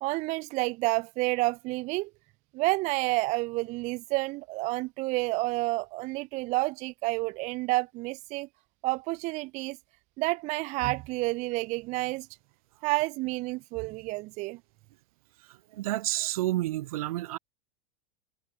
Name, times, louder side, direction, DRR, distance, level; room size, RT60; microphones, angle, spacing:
voice 1, 0.0-2.1 2.5-8.5 8.8-9.8 10.2-12.3 12.8-14.6, right 22 dB, 40° right, 0.4 m, -29 dB
voice 2, 15.7-17.4, right 16 dB, 85° right, 2.4 m, -29 dB
supercardioid pair, 135°, 18 cm